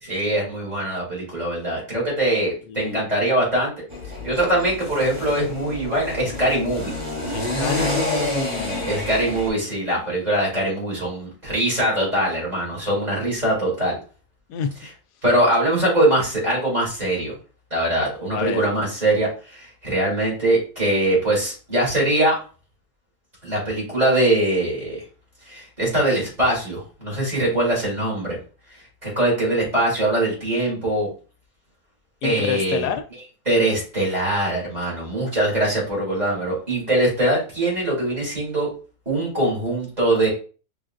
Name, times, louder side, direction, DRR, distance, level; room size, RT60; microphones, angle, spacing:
voice 1, 0.0-3.7 4.2-6.9 8.9-14.0 14.8-14.9 15.2-17.3 17.7-22.4 23.4-25.0 25.5-28.4 29.0-31.1 32.2-32.9 33.4-38.7 39.1-40.3, right 1 dB, 25° right, -5 dB, 2.7 m, -22 dB
voice 2, 2.7-3.0 7.3-8.9 14.5-14.7 18.3-18.6 32.2-33.0, left 8 dB, 85° left, 9 dB, 1.1 m, -27 dB
sound 1, 3.9-9.5, left 1 dB, 10° right, 2.4 m, -28 dB
5.4 x 3.6 x 2.5 m, 0.37 s
omnidirectional pair, 1.7 m